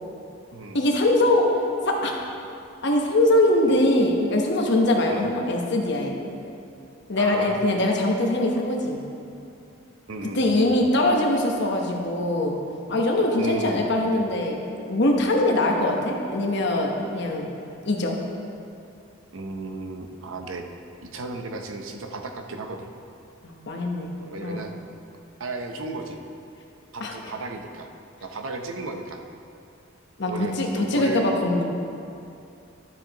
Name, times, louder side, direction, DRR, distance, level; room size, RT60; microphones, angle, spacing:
voice 1, 0.7-1.5 1.9-2.1 2.8-6.2 7.1-9.0 10.3-12.6 12.9-14.6 14.9-17.5 17.8-18.2 23.4-24.1 24.4-24.6 27.0-27.1 30.2-31.6, left 1 dB, 60° left, 1 dB, 1.0 m, -22 dB
voice 2, 7.2-7.6 10.1-10.8 13.4-13.9 19.3-20.7 21.0-22.9 24.2-24.7 25.4-26.2 26.9-27.9 28.2-29.2 30.3-31.3, right 3 dB, 85° right, 4 dB, 0.7 m, -34 dB
12.0 x 7.2 x 2.9 m, 2.6 s
head